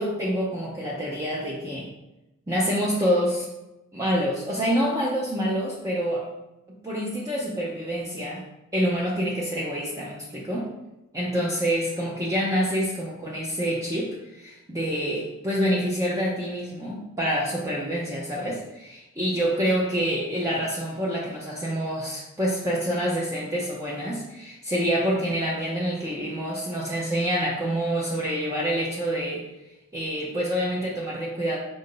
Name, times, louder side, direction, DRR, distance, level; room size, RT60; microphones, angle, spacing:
voice 1, 0.0-1.9 2.5-3.5 3.9-6.3 6.7-8.4 8.7-10.7 11.1-29.4 29.9-31.6, equal, 15° right, -5 dB, 0.6 m, -27 dB
5.4 x 2.6 x 3.8 m, 0.96 s
head